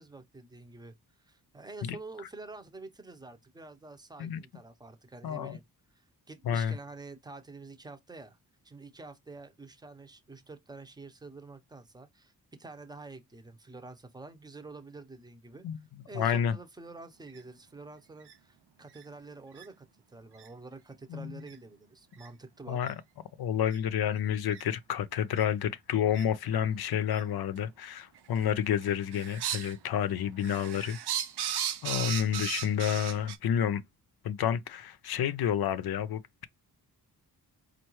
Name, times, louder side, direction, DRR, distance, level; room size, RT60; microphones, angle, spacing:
voice 1, 0.0-5.6 5.9-8.4 8.6-22.8, right 3 dB, 10° right, 0.7 m, -48 dB
voice 2, 5.2-5.6 6.5-6.7 15.6-15.8 16.1-16.6 21.1-21.3 22.7-22.9 23.4-31.0 31.8-33.8 34.2-36.4, left 9 dB, 70° left, 0.6 m, -29 dB
sound 1, 17.3-17.4 18.2-18.3 19.0-19.1 19.5-19.6 20.3-20.5 21.5-21.6 22.1-22.3 22.8-22.9 23.7-23.8 24.5-24.6 25.3-25.4 26.1-26.2 27.1-27.2 28.1-28.5 28.8-29.7 30.1-33.4, right 9 dB, 85° right, 0.6 m, -36 dB
4.5 x 2.5 x 3.0 m
cardioid pair, 95°, 39 cm